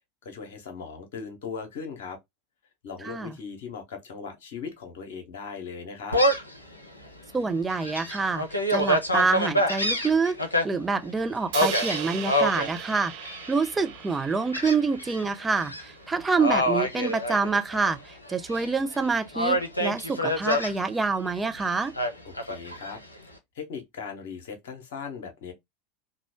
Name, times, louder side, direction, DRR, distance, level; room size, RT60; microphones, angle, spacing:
voice 1, 0.2-2.2 2.8-6.2 22.2-23.0 23.5-25.5, left 5 dB, 60° left, 1.0 m, -38 dB
voice 2, 3.0-3.4 7.3-8.4 8.7-10.4 10.6-13.1 13.5-21.9, right 4 dB, 15° right, 0.4 m, -26 dB
Gull seagull, 6.1-6.6 7.1-7.2 7.7-10.6 11.5-12.7 13.2-13.7 14.5-15.2 15.6-15.8 16.4-17.9 18.3-19.0 19.3-20.7 22.0-23.0, equal, 85° left, 0.6 m, -26 dB
Crash cymbal, 11.5-15.7, right 8 dB, 55° right, 0.7 m, -38 dB
3.0 x 2.3 x 3.0 m
figure-of-eight pair, 80°, 0 cm